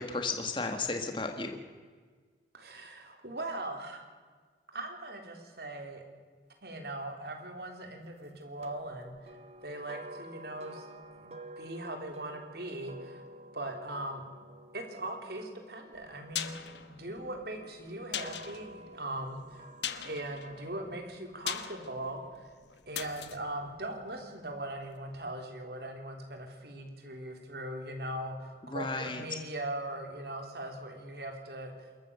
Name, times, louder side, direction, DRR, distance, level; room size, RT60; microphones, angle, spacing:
voice 1, 0.0-1.6 28.7-29.2, left 3 dB, 30° left, 5 dB, 1.6 m, -34 dB
voice 2, 2.5-4.0 4.7-6.0 6.6-9.1 9.6-10.9 11.2-13.3 13.5-14.2 14.7-19.6 20.0-22.5 22.9-32.0, right 1 dB, 65° right, 3 dB, 3.6 m, -40 dB
sound 1, 8.6-16.8 17.5-21.0, right 1 dB, 35° right, 1.3 m, -51 dB
sound 2, 15.9-24.8 25.1-25.2, left 9 dB, 85° left, 1.3 m, -42 dB
27.5 x 14.0 x 6.9 m, 1.5 s
head